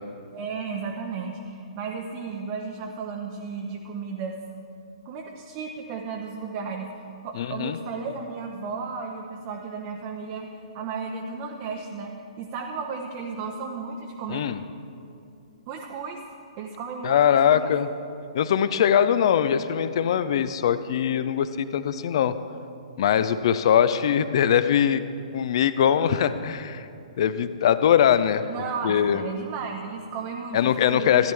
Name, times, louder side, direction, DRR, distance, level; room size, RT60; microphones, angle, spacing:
voice 1, 0.3-4.4 5.0-10.5 10.7-14.5 15.7-16.2 16.6-17.7 28.5-31.2, right 5 dB, 35° right, 1 dB, 0.7 m, -34 dB
voice 2, 7.4-7.8 14.3-14.6 17.0-17.9 18.3-22.3 23.0-25.0 25.3-26.9 27.2-28.4 28.8-29.2 30.5-31.3, left 9 dB, 50° left, 13 dB, 0.5 m, -21 dB
14.0 x 10.5 x 3.4 m, 2.5 s
figure-of-eight pair, 120°, 4 cm